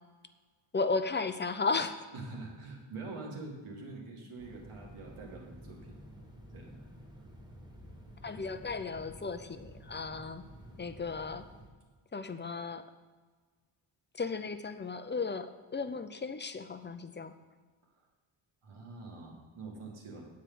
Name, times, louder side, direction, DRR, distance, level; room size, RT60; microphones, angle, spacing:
voice 1, 0.7-1.9 8.2-10.4 10.8-11.5 12.1-12.8 14.1-17.3, left 4 dB, 25° left, 10 dB, 0.5 m, -35 dB
voice 2, 2.1-6.0 6.5-6.9 18.0-18.1 18.6-20.3, right 3 dB, 80° right, -1 dB, 2.2 m, -45 dB
sound 1, 4.4-11.7, equal, 10° right, 1.2 m, -51 dB
9.0 x 4.8 x 7.7 m, 1.4 s
wide cardioid pair, 130°, 50 cm